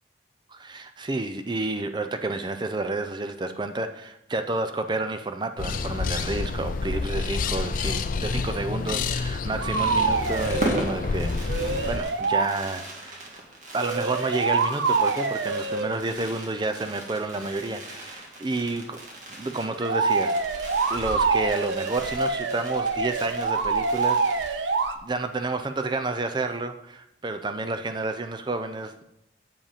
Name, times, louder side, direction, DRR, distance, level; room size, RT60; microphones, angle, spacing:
voice 1, 0.5-13.3 13.7-19.0 19.4-20.4 20.9-29.0, right 2 dB, 25° right, 8 dB, 0.5 m, -30 dB
sound 1, 5.6-12.0, left 4 dB, 50° left, 0.4 m, -29 dB
sound 2, 9.2-9.3 9.6-10.9 11.5-12.5 13.8-15.9 19.8-24.9, right 4 dB, 85° right, 0.5 m, -25 dB
Fireworks, 9.8-24.9 25.2-25.3 25.5-25.8, right 1 dB, 45° right, 1.5 m, -39 dB
7.4 x 4.9 x 5.0 m, 0.80 s
head